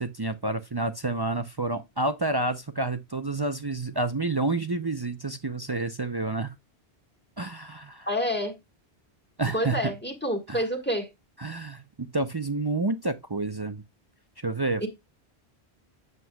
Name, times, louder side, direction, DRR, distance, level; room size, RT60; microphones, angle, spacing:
voice 1, 0.0-6.6 7.4-8.1 9.4-9.9 10.5-10.6 11.4-13.8 14.4-14.9, right 2 dB, 30° right, 0.5 m, -29 dB
voice 2, 8.1-8.5 9.5-11.1 14.8-14.9, equal, 10° left, 1.5 m, -28 dB
8.2 x 7.5 x 2.3 m
omnidirectional pair, 1.1 m